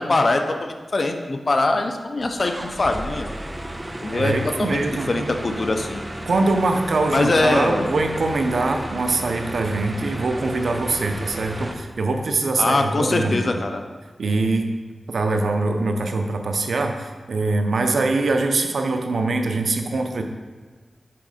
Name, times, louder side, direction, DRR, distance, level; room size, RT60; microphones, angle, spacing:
voice 1, 0.0-3.3 4.0-6.0 7.1-7.9 12.6-13.8, left 2 dB, 50° left, 5 dB, 0.5 m, -22 dB
sound 1, 2.2-11.7, right 1 dB, 20° right, 0.5 m, -33 dB
voice 2, 4.1-5.4 6.2-13.6 14.2-14.7 15.1-20.2, right 3 dB, 85° right, 4 dB, 0.5 m, -23 dB
5.9 x 3.6 x 4.9 m, 1.3 s
wide cardioid pair, 85°, 0 cm